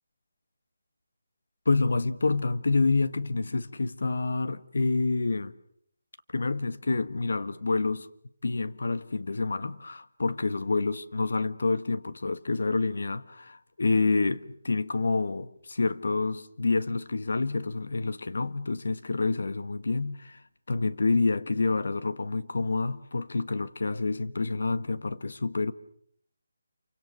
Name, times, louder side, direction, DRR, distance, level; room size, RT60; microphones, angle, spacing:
voice 1, 1.6-5.5 6.3-8.1 8.4-20.4 20.7-25.7, left 3 dB, 70° left, 1.6 m, -28 dB
28.5 x 24.5 x 6.4 m
hypercardioid pair, 170°, 0 cm